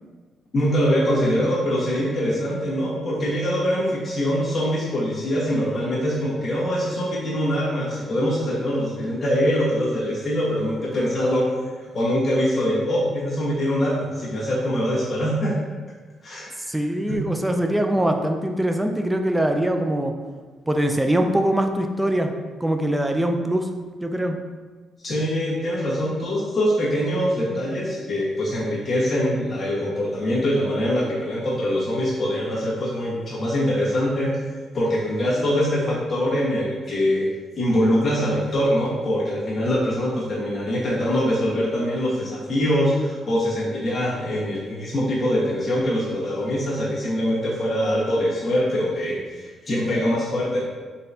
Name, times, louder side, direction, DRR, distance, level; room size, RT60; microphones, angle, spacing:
voice 1, 0.5-11.5 11.9-15.6 16.2-16.5 17.1-17.2 25.0-34.3 34.7-37.3 37.5-50.6, equal, 35° left, -9 dB, 1.5 m, -23 dB
voice 2, 16.7-20.1 20.7-22.3 22.6-23.7 24.0-24.4, right 1 dB, 10° right, 5 dB, 0.4 m, -22 dB
4.0 x 3.8 x 2.8 m, 1.4 s
cardioid pair, 90°, 0 cm